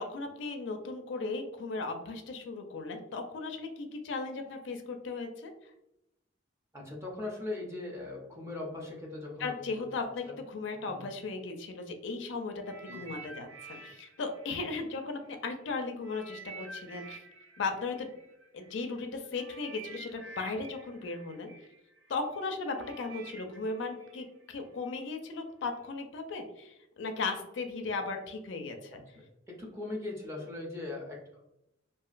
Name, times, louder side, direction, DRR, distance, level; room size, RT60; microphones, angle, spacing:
voice 1, 0.0-5.5 9.4-17.2 17.6-18.1 18.5-21.5 22.1-29.0, left 3 dB, 60° left, 5 dB, 0.4 m, -37 dB
voice 2, 6.7-9.8 10.2-10.4 10.9-11.1 12.9-13.0 28.9-29.0 29.5-31.4, left 2 dB, 15° right, -2 dB, 0.6 m, -40 dB
sound 1, 12.6-15.5 16.0-25.0 25.7-25.9, right 4 dB, 70° right, 0.5 m, -50 dB
2.9 x 2.4 x 2.4 m, 0.87 s
head